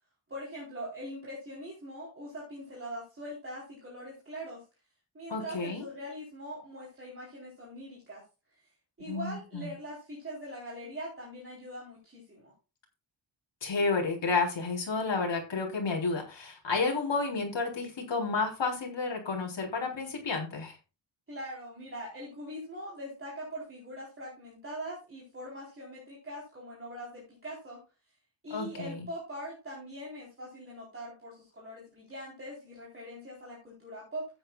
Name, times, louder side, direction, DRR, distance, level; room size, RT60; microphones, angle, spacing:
voice 1, 0.3-4.6 5.1-8.2 9.0-12.5 21.3-27.8 28.4-34.3, equal, 25° right, -5 dB, 4.0 m, -42 dB
voice 2, 5.3-5.8 9.1-9.7 13.6-20.8 28.5-29.1, left 4 dB, 65° left, 0 dB, 3.9 m, -31 dB
14.0 x 9.3 x 2.4 m, 0.31 s
wide cardioid pair, 165°, 47 cm